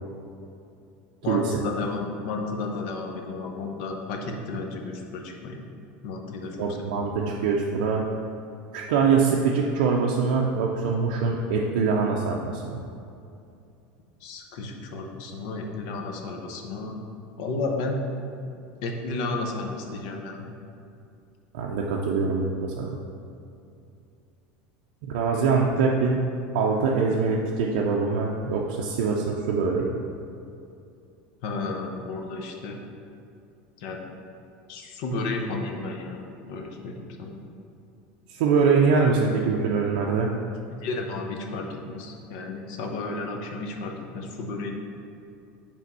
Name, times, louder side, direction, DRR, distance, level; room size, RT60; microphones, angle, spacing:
voice 1, 1.2-5.6 6.0-6.8 14.2-17.0 17.4-18.0 18.8-20.5 31.4-32.8 33.8-34.0 34.7-37.4 40.7-44.8, left 3 dB, 55° left, 2 dB, 0.7 m, -32 dB
voice 2, 6.6-8.1 8.7-12.8 21.5-23.0 25.0-26.3 26.5-30.0 38.3-40.3, right 5 dB, 75° right, -2 dB, 0.5 m, -23 dB
5.1 x 3.5 x 5.4 m, 2.6 s
cardioid pair, 175°, 5 cm